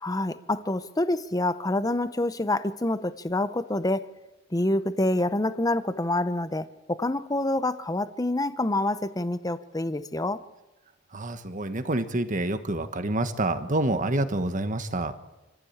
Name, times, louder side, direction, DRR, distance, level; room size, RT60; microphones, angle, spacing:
voice 1, 0.0-4.1 4.5-10.4, left 1 dB, 20° left, 13 dB, 0.8 m, -27 dB
voice 2, 11.1-15.1, right 2 dB, 40° right, 9 dB, 1.4 m, -27 dB
26.5 x 15.0 x 8.7 m, 1.1 s
head